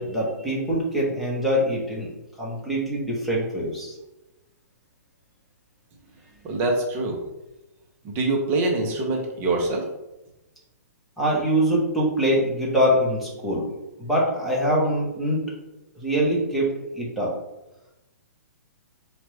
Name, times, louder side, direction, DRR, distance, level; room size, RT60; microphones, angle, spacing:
voice 1, 0.0-2.1 2.4-4.0 11.2-15.4 16.0-17.3, equal, ahead, -6 dB, 1.0 m, -24 dB
voice 2, 6.4-7.2 8.0-9.8, right 2 dB, 25° right, 0 dB, 0.8 m, -24 dB
4.4 x 2.5 x 3.2 m, 0.97 s
hypercardioid pair, 145°, 9 cm